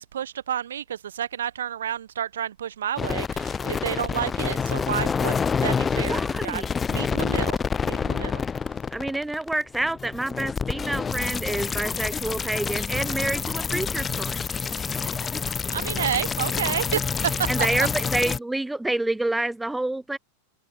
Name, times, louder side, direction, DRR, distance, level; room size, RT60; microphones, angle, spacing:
voice 1, 0.0-8.4 15.7-17.9, right 9 dB, 65° right, 1.3 m, -30 dB
sound 1, 3.0-18.4, left 6 dB, 15° left, 0.3 m, -27 dB
voice 2, 6.1-6.7 8.9-14.4 17.5-20.2, right 2 dB, 5° right, 0.9 m, -28 dB
figure-of-eight pair, 90°, 0 cm